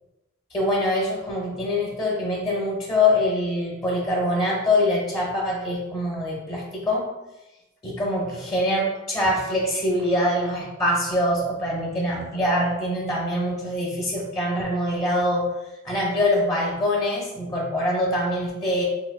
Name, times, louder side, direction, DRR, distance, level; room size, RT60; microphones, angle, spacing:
voice 1, 0.5-7.1 7.8-15.4 15.8-18.8, left 1 dB, 25° left, -3 dB, 0.7 m, -24 dB
3.8 x 2.8 x 2.2 m, 1.0 s
head